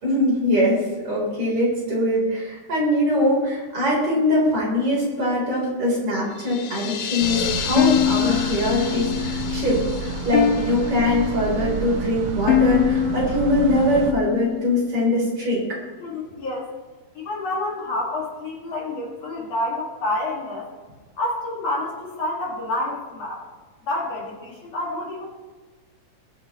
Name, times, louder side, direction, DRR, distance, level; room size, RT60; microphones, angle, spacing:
voice 1, 0.0-15.8, left 1 dB, 40° right, -5 dB, 4.7 m, -22 dB
sound 1, 6.3-11.9, left 9 dB, 70° left, 1.8 m, -32 dB
sound 2, 7.2-14.1, right 4 dB, 85° right, 1.2 m, -30 dB
sound 3, 7.8-14.9, left 9 dB, 90° left, 2.4 m, -24 dB
voice 2, 16.0-16.7 17.1-20.7 21.2-23.4 23.9-25.2, left 1 dB, 50° left, -3 dB, 3.1 m, -28 dB
22.0 x 7.8 x 3.1 m, 1.3 s
omnidirectional pair, 3.8 m